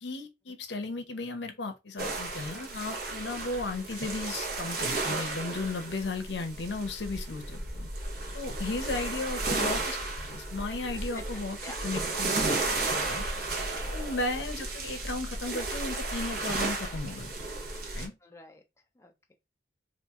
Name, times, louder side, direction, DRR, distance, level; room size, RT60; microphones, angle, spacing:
voice 1, 0.0-7.9 8.3-10.0 10.3-11.6 11.8-13.2 13.9-17.3 17.9-18.1, left 3 dB, 70° left, 0.7 m, -35 dB
sound 1, 2.0-18.1, right 2 dB, 55° right, 0.9 m, -33 dB
voice 2, 11.1-11.8 13.3-14.1 18.2-18.6 19.0-19.3, left 2 dB, 15° left, 0.4 m, -49 dB
2.9 x 2.5 x 3.4 m
head